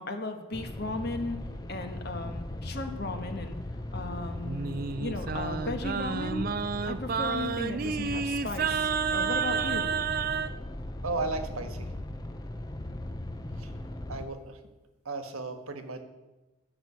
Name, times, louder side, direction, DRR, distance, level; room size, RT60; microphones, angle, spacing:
voice 1, 0.0-3.6 3.9-6.5 6.9-10.0, left 2 dB, 50° left, 6 dB, 1.3 m, -36 dB
sound 1, 0.5-14.2, left 1 dB, 20° left, 0.6 m, -38 dB
Singing, 4.4-10.5, right 6 dB, 40° right, 0.4 m, -30 dB
voice 2, 11.0-11.9 13.6-13.7 14.1-14.6 15.0-16.0, right 3 dB, 85° right, 7 dB, 1.4 m, -34 dB
13.0 x 6.0 x 8.2 m, 1.1 s
head